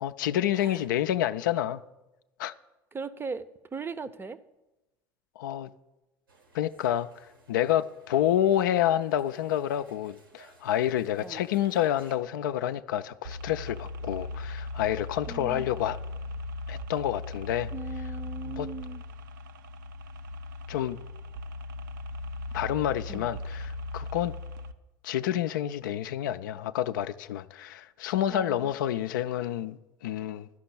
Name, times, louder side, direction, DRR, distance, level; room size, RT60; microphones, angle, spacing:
voice 1, 0.0-1.8 2.4-2.5 5.4-5.7 6.5-7.1 7.5-16.0 16.7-17.7 18.5-18.7 20.7-21.0 22.5-24.4 25.0-30.5, left 11 dB, 70° left, 0.4 m, -28 dB
voice 2, 2.9-4.4 11.2-11.5 15.3-15.6 17.7-19.0 23.1-23.3 28.3-28.7, right 4 dB, 20° right, 0.6 m, -38 dB
sound 1, 6.3-12.2, right 2 dB, 85° right, 1.6 m, -59 dB
sound 2, 13.2-24.7, left 2 dB, 70° right, 0.6 m, -38 dB
11.5 x 5.9 x 8.0 m
figure-of-eight pair, 70°, 11 cm